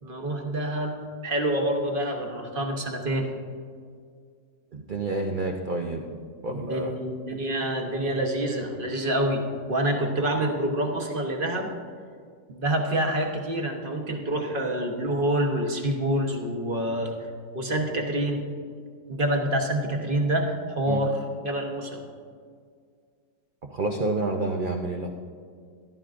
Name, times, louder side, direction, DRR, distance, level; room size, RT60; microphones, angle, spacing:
voice 1, 0.0-3.3 6.4-11.7 12.5-17.1 17.5-18.4 19.1-22.0, right 1 dB, 35° right, 2 dB, 1.0 m, -27 dB
voice 2, 4.7-6.1 6.4-6.9 20.9-21.0 23.6-25.1, right 2 dB, 85° right, 2 dB, 0.4 m, -29 dB
14.5 x 13.0 x 2.5 m, 2.1 s
omnidirectional pair, 1.9 m